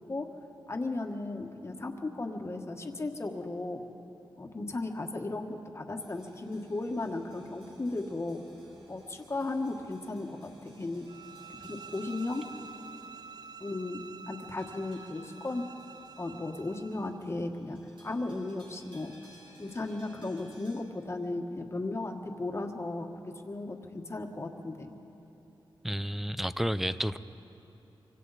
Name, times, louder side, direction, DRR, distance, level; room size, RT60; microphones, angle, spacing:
voice 1, 0.7-3.8 4.4-8.4 8.9-11.1 11.6-12.4 13.6-15.6 16.2-19.2 19.6-24.9, left 2 dB, 30° left, 4 dB, 1.5 m, -36 dB
sound 1, 6.0-20.8, right 2 dB, 85° right, 4.3 m, -60 dB
sound 2, 11.1-17.2, right 5 dB, 50° right, 0.5 m, -48 dB
voice 2, 25.8-27.2, equal, 5° right, 14 dB, 0.5 m, -31 dB
25.0 x 24.5 x 4.2 m, 3.0 s
wide cardioid pair, 100°, 9 cm